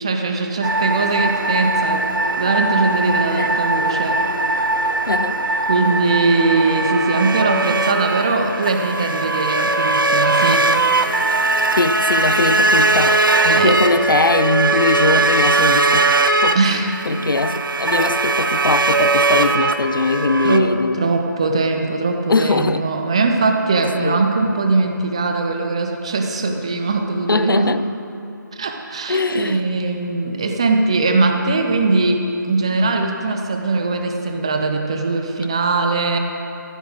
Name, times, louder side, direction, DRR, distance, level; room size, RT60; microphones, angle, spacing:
voice 1, 0.0-2.1 2.4-4.2 5.7-10.7 13.5-13.8 16.5-17.2 20.4-27.8 28.5-36.2, right 3 dB, 15° right, 4 dB, 0.5 m, -20 dB
sound 1, 0.6-20.6, right 2 dB, 90° right, 0.9 m, -19 dB
voice 2, 5.1-5.4 11.8-16.6 17.1-21.1 22.3-22.9 24.0-24.3 27.3-27.8 29.1-29.6, left 3 dB, 85° left, 13 dB, 0.6 m, -21 dB
14.5 x 7.6 x 6.4 m, 2.9 s
figure-of-eight pair, 170°, 11 cm